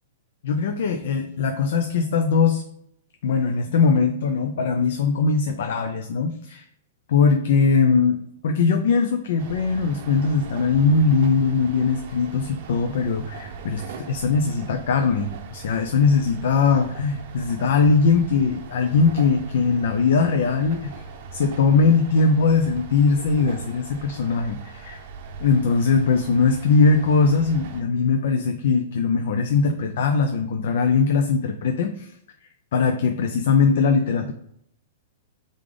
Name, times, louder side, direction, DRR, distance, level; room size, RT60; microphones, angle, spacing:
voice 1, 0.4-2.6 3.2-6.6 7.1-8.2 8.4-21.0 21.3-25.0 25.4-32.1 32.7-34.3, left 4 dB, 70° left, 5 dB, 0.4 m, -20 dB
sound 1, 9.4-27.8, right 5 dB, 55° right, 0.6 m, -40 dB
3.7 x 3.3 x 3.7 m, 0.72 s
hypercardioid pair, 140°, 0 cm